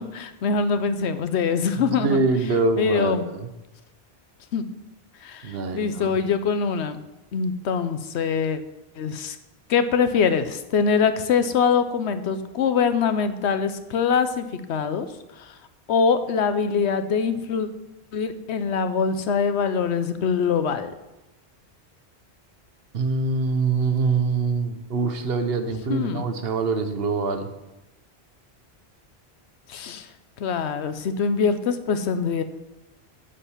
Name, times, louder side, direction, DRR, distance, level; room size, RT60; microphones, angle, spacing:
voice 1, 0.0-2.2 2.8-3.2 4.5-4.6 5.2-7.0 7.3-8.6 9.0-9.4 9.7-15.1 15.4-15.5 15.9-17.7 18.1-20.9 25.9-26.2 29.7-30.1 30.4-32.4, left 6 dB, 85° left, 10 dB, 1.0 m, -23 dB
voice 2, 2.0-3.5 5.4-6.1 22.9-27.5, right 4 dB, 65° right, 8 dB, 1.1 m, -24 dB
8.6 x 5.0 x 7.2 m, 0.98 s
omnidirectional pair, 1.1 m